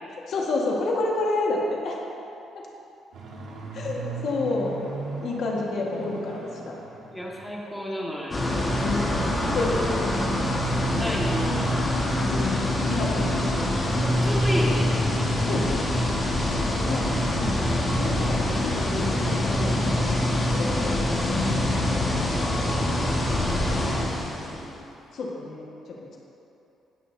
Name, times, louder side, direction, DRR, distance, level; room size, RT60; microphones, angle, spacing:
voice 1, 0.3-2.0 2.5-2.6 3.7-4.8 5.2-6.8 8.8-9.1 9.5-9.8 12.3-13.6 15.4-15.7 16.9-17.1 17.4-20.2 20.5-22.4 25.1-25.6 25.9-26.2, left 2 dB, 60° left, -2 dB, 1.5 m, -30 dB
sound 1, 3.1-7.7 8.1-13.3 13.6-13.9 14.2-14.3 14.7-14.8, right 4 dB, 70° right, 1.5 m, -41 dB
voice 2, 7.1-8.5 10.8-11.8 14.1-14.9 22.6-24.7, equal, 5° left, -4 dB, 1.6 m, -33 dB
sound 2, 8.3-24.7, left 1 dB, 25° left, 1.5 m, -25 dB
17.5 x 6.3 x 2.7 m, 2.9 s
cardioid pair, 120°, 0 cm